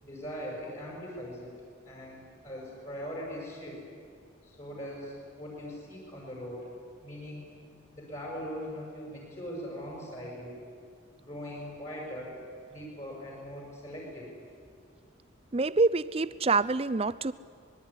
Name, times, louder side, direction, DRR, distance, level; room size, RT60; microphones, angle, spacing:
voice 1, 0.0-1.5 1.8-3.8 4.4-6.6 7.0-7.5 7.9-10.5 11.2-12.4 12.7-14.3, equal, 35° left, -2 dB, 6.4 m, -40 dB
voice 2, 15.5-17.3, right 3 dB, 30° right, 16 dB, 0.6 m, -26 dB
25.0 x 21.0 x 9.9 m, 2.2 s
head